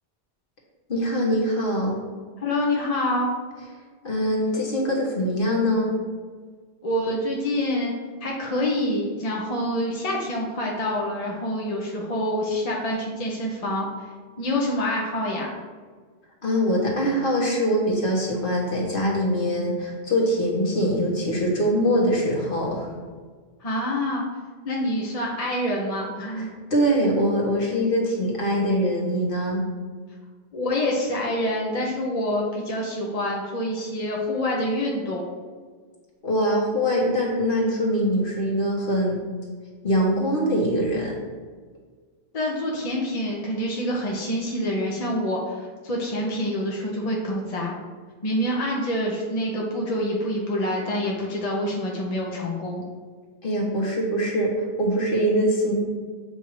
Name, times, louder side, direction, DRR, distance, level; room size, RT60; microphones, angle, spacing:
voice 1, 0.9-2.0 4.0-5.9 16.4-22.9 26.4-29.6 36.2-39.2 39.8-41.2 53.4-55.7, equal, 55° left, -2 dB, 1.4 m, -23 dB
voice 2, 2.4-3.3 6.8-7.9 8.2-14.1 14.4-15.5 23.6-24.2 24.6-26.5 30.5-35.2 42.3-47.8 48.2-52.8, left 1 dB, 40° left, -2 dB, 0.8 m, -26 dB
7.8 x 2.7 x 4.7 m, 1.5 s
omnidirectional pair, 1.1 m